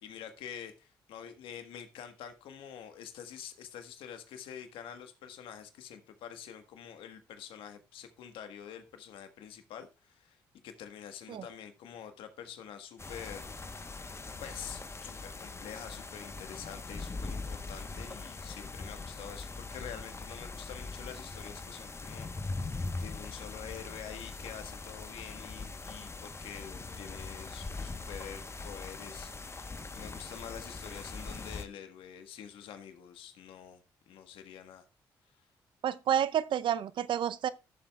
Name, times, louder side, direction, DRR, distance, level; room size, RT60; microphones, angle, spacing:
voice 1, 0.0-13.5 14.4-29.7 29.9-33.8 34.1-34.8, left 8 dB, 80° left, 1.4 m, -47 dB
sound 1, 13.0-31.6, left 3 dB, 30° left, 1.1 m, -41 dB
voice 2, 35.8-37.5, right 9 dB, 65° right, 0.6 m, -29 dB
14.0 x 7.2 x 2.4 m
hypercardioid pair, 50°, 9 cm